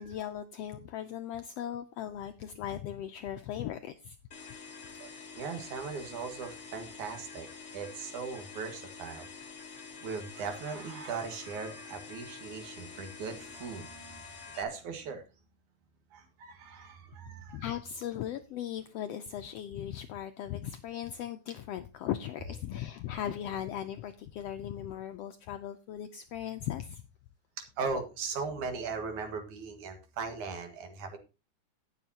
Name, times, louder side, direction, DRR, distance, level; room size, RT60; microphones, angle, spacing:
voice 1, 0.0-4.2 17.5-27.0, left 10 dB, 80° left, 8 dB, 1.4 m, -38 dB
sound 1, 4.3-14.6, left 5 dB, 50° left, 0.8 m, -47 dB
voice 2, 5.0-7.5 7.7-9.3 10.0-14.2 14.5-15.2 16.1-17.7 27.8-31.2, right 5 dB, 75° right, 5 dB, 3.2 m, -38 dB
18.5 x 7.1 x 2.8 m, 0.28 s
omnidirectional pair, 3.5 m